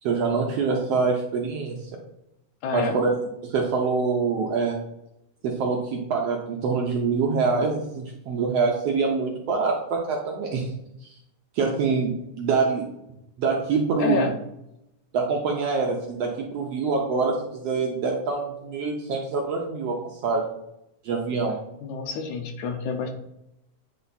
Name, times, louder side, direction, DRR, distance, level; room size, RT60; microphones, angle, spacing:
voice 1, 0.0-1.8 2.7-3.1 3.4-4.8 5.4-10.7 11.0-11.1 11.5-12.9 13.4-14.2 15.1-20.0 20.2-20.4 21.0-21.6, right 4 dB, 70° right, 0 dB, 1.5 m, -25 dB
voice 2, 2.6-3.0 14.0-14.3 21.8-23.1, left 4 dB, 75° left, 5 dB, 2.2 m, -28 dB
8.7 x 3.4 x 4.1 m, 0.83 s
omnidirectional pair, 3.6 m